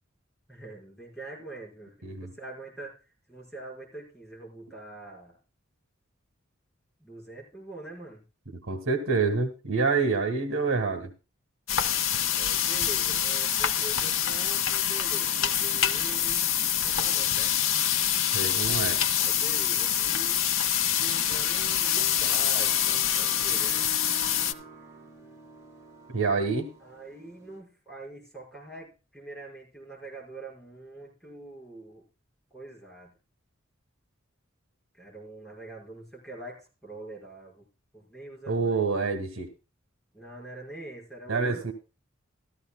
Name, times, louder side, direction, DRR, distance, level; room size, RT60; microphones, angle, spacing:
voice 1, 0.5-3.0 3.3-5.4 7.0-8.2 12.3-17.6 19.2-20.6 21.0-23.9 26.8-32.0 32.5-33.1 34.9-37.7 37.9-38.9 40.1-41.7, right 2 dB, ahead, -3 dB, 5.3 m, -44 dB
voice 2, 8.7-11.1 18.3-19.0 26.1-26.7 38.5-39.5 41.3-41.7, right 4 dB, 75° right, 7 dB, 1.8 m, -27 dB
sound 1, 11.7-24.5, left 9 dB, 75° left, 0.8 m, -26 dB
sound 2, 20.7-27.6, right 2 dB, 15° right, 2.7 m, -46 dB
14.5 x 13.5 x 2.3 m, 0.31 s
head